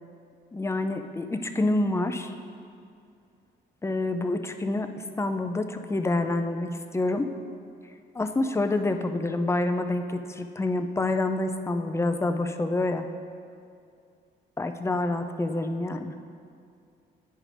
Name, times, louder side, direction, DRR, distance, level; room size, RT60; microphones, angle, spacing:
voice 1, 0.5-2.3 3.8-7.3 8.1-13.1 14.6-16.2, left 2 dB, 15° left, 7 dB, 0.4 m, -27 dB
10.0 x 4.9 x 3.3 m, 2.4 s
cardioid pair, 90°, 20 cm